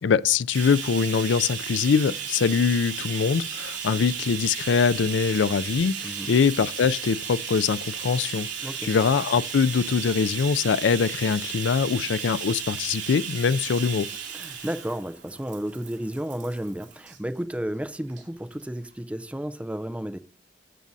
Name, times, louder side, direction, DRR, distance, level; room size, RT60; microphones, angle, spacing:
voice 1, 0.0-8.5 8.8-14.1, left 6 dB, 85° left, 0.4 m, -23 dB
Bathtub (filling or washing), 0.5-17.2 18.1-18.2 18.6-18.7, right 7 dB, 80° right, 2.8 m, -35 dB
voice 2, 6.0-6.4 8.6-8.9 14.3-20.2, equal, 5° right, 0.5 m, -32 dB
14.0 x 6.2 x 2.7 m
head